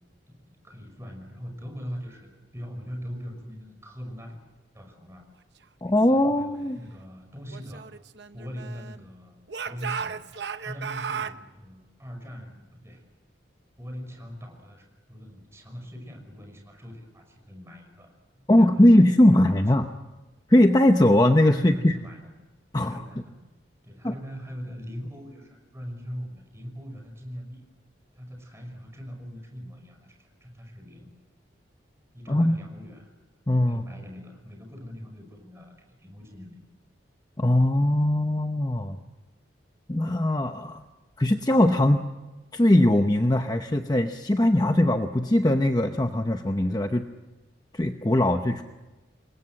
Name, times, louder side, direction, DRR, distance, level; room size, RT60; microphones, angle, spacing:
voice 1, 0.6-4.4 4.7-5.2 6.1-7.9 8.3-9.4 9.7-10.2 10.6-13.0 13.8-19.9 21.6-22.3 22.9-23.4 23.8-27.6 28.1-31.1 32.1-33.1 33.7-36.5, equal, 15° right, 3 dB, 5.7 m, -41 dB
voice 2, 5.8-6.8 18.5-19.9 20.5-22.0 22.7-23.0 24.0-24.1 32.3-32.6 33.5-33.8 37.4-39.0 39.9-40.8 41.2-42.2 42.5-47.1 47.7-48.6, left 1 dB, 20° left, 6 dB, 0.8 m, -20 dB
Speech / Shout, 7.5-9.1 9.5-11.4, right 6 dB, 60° right, 0.9 m, -35 dB
28.0 x 22.5 x 7.7 m, 1.1 s
head